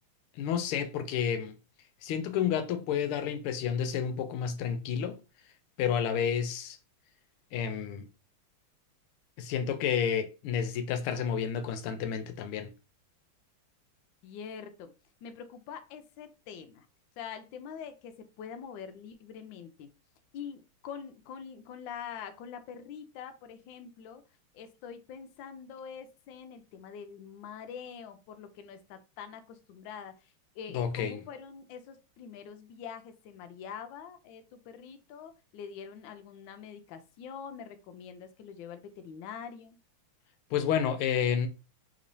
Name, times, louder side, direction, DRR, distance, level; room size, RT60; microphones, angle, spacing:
voice 1, 0.4-1.6 2.0-5.2 5.8-6.8 7.5-8.1 9.4-12.7 30.7-31.2 40.5-41.5, left 8 dB, 90° left, 1.5 m, -30 dB
voice 2, 14.2-14.9 15.2-16.9 17.2-19.9 20.3-24.2 24.5-39.8, left 7 dB, 75° left, 1.2 m, -45 dB
3.5 x 3.0 x 2.6 m
omnidirectional pair, 2.3 m